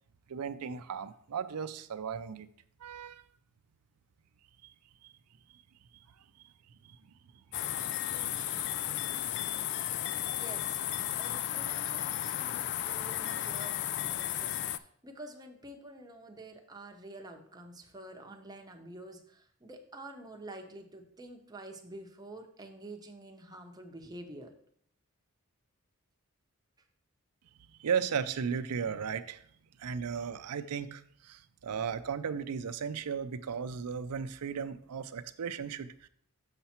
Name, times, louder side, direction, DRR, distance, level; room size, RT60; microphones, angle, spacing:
voice 1, 0.3-2.5 2.8-3.2 4.6-4.7 5.0-5.1 6.8-7.0 7.8-8.8 27.8-29.5 29.8-36.1, right 6 dB, 85° right, 11 dB, 0.5 m, -36 dB
sound 1, 7.5-14.8, left 12 dB, 50° left, 0.3 m, -34 dB
voice 2, 10.3-10.8 11.2-24.5, right 2 dB, 20° right, 3 dB, 0.9 m, -48 dB
6.8 x 5.7 x 4.3 m, 0.63 s
head